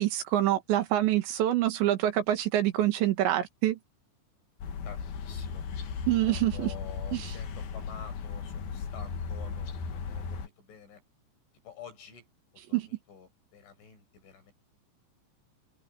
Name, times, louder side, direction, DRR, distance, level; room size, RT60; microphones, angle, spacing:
voice 1, 0.0-3.8 6.1-6.7 7.1-7.3 12.7-12.9, right 13 dB, 75° right, 3.7 m, -26 dB
sound 1, 4.6-10.5, left 5 dB, 60° left, 3.8 m, -36 dB
voice 2, 4.8-5.6 6.3-11.0 11.6-12.3 12.7-14.5, left 8 dB, 80° left, 10.0 m, -49 dB
omnidirectional pair, 5.4 m